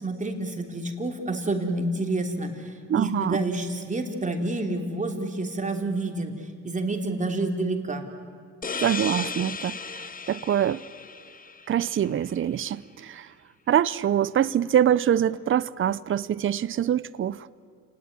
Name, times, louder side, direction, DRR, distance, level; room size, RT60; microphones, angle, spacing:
voice 1, 0.0-6.3 6.6-8.1, right 2 dB, 25° right, 3.4 m, -28 dB
voice 2, 2.9-3.4 8.8-10.8 11.7-13.3 13.7-17.5, right 10 dB, 45° right, 0.7 m, -24 dB
sound 1, 8.6-12.1, left 5 dB, 30° left, 1.0 m, -35 dB
30.0 x 19.0 x 9.8 m
cardioid pair, 90°, 30 cm